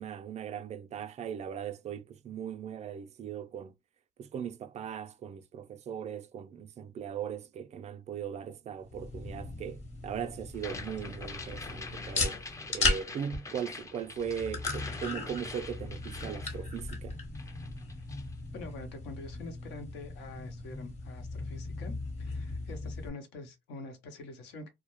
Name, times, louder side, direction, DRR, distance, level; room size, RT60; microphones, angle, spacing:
voice 1, 0.0-3.7 4.2-12.4 12.7-17.2, right 8 dB, 40° right, 0.4 m, -39 dB
sound 1, 8.8-23.1, left 3 dB, 40° left, 0.9 m, -37 dB
sound 2, 10.5-17.1 17.3-18.3, left 3 dB, 20° left, 0.4 m, -45 dB
voice 2, 18.5-24.7, left 2 dB, 90° left, 0.8 m, -45 dB
2.2 x 2.0 x 2.9 m
cardioid pair, 110°, 17 cm